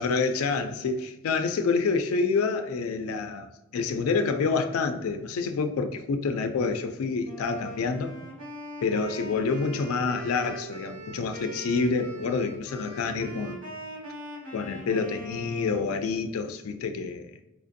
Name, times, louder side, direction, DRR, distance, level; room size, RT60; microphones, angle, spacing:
voice 1, 0.0-8.1 8.8-13.6 14.5-17.3, left 4 dB, 80° left, 0.3 m, -27 dB
Wind instrument woodwind instrument, 7.2-16.0, right 1 dB, 90° right, 1.4 m, -41 dB
4.4 x 2.6 x 2.5 m
head